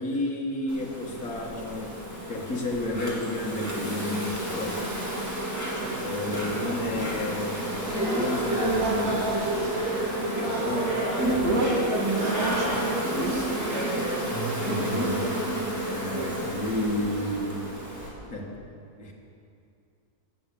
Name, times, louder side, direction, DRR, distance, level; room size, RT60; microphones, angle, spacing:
voice 1, 0.0-2.0 2.3-5.1 6.0-9.4 10.0-11.6 15.8-17.7 18.3-18.5 19.0-19.1, left 1 dB, 60° left, -1 dB, 2.3 m, -32 dB
Insect, 0.7-18.1, right 1 dB, 10° right, 3.0 m, -31 dB
voice 2, 5.8-6.1 8.3-9.6 11.4-15.4 15.9-16.4, right 2 dB, 75° right, 0 dB, 2.5 m, -33 dB
sound 1, 7.7-12.8, right 1 dB, 35° right, 4.0 m, -30 dB
15.0 x 8.1 x 8.5 m, 2.5 s
omnidirectional pair, 1.7 m